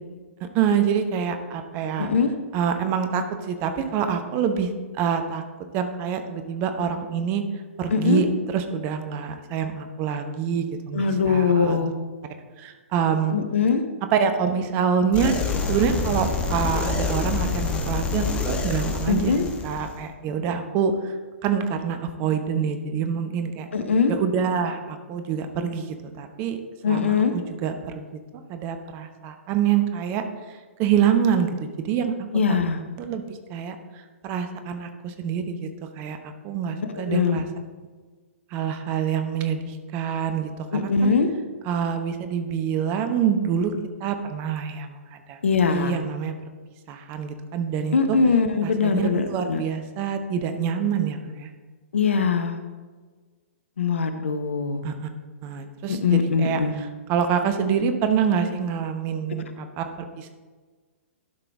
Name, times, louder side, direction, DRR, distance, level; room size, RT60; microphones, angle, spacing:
voice 1, 0.4-2.1 2.5-4.7 5.0-5.4 5.7-7.4 7.8-8.3 8.5-11.8 12.6-13.4 14.1-19.3 19.6-21.2 21.4-23.7 24.1-28.0 28.5-32.1 32.5-32.6 33.0-35.7 36.0-36.2 36.4-37.5 38.5-40.6 41.0-41.1 41.7-43.7 44.0-45.4 45.7-46.3 46.9-48.2 48.6-51.5 54.8-54.9 55.4-60.3, right 7 dB, 30° right, 7 dB, 0.8 m, -26 dB
voice 2, 2.0-2.3 7.9-8.2 10.9-11.9 13.3-13.8 19.1-19.4 23.7-24.1 26.8-27.3 32.3-32.8 37.0-37.4 40.7-41.3 45.4-46.0 47.9-49.6 51.9-52.6 53.8-54.8 55.9-56.7, left 5 dB, 65° left, 8 dB, 0.9 m, -22 dB
sound 1, 15.1-20.0, left 4 dB, 15° left, 1.1 m, -27 dB
12.0 x 5.9 x 3.6 m, 1.4 s
figure-of-eight pair, 115°, 7 cm